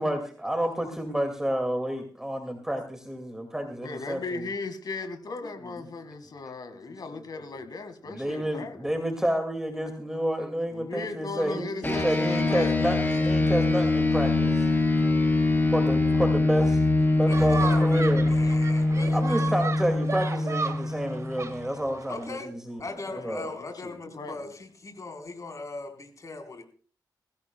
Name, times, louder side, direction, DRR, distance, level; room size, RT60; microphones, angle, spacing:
voice 1, 0.0-4.5 5.8-5.9 7.1-7.6 8.0-14.7 15.7-16.8 17.1-18.3 19.1-23.5 24.1-24.2, equal, 5° right, 2.2 m, -30 dB
voice 2, 3.8-8.9 10.7-13.1 23.1-24.5, left 3 dB, 60° left, 1.9 m, -37 dB
sound 1, 11.8-21.6, left 2 dB, 25° left, 4.1 m, -23 dB
voice 3, 17.3-19.6 22.1-22.5 22.8-26.6, left 3 dB, 45° left, 4.2 m, -39 dB
sound 2, 17.3-22.4, right 4 dB, 40° right, 1.8 m, -35 dB
22.0 x 16.0 x 2.3 m
cardioid pair, 90°, 8 cm